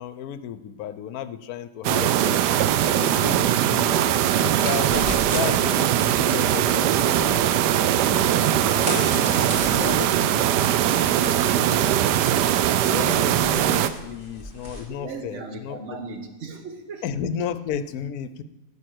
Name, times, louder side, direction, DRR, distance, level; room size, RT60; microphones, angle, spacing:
voice 1, 0.0-2.4 2.8-3.9 4.3-8.3 8.7-12.5 12.9-15.8 17.0-18.4, left 8 dB, 70° left, 13 dB, 1.1 m, -34 dB
sound 1, 1.8-13.9, right 11 dB, 90° right, 1.2 m, -21 dB
sound 2, 4.6-14.8, right 1 dB, 30° right, 2.6 m, -37 dB
voice 2, 14.9-17.0, right 3 dB, 50° right, 5 dB, 1.5 m, -37 dB
11.0 x 5.7 x 7.8 m, 1.0 s
omnidirectional pair, 1.7 m